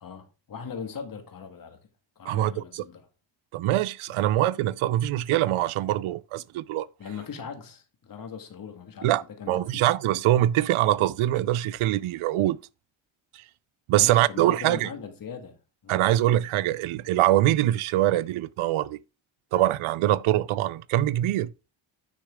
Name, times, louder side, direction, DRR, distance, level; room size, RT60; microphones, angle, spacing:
voice 1, 0.0-1.8 2.2-3.1 4.1-4.2 7.0-9.8 14.0-15.6 15.8-16.0, left 6 dB, 40° left, 1.8 m, -40 dB
voice 2, 2.3-2.8 3.5-6.9 9.0-12.6 13.3-13.4 13.9-14.9 15.9-19.0 19.5-21.5, right 14 dB, 75° right, 0.6 m, -23 dB
9.9 x 6.4 x 3.6 m
cardioid pair, 150°, 49 cm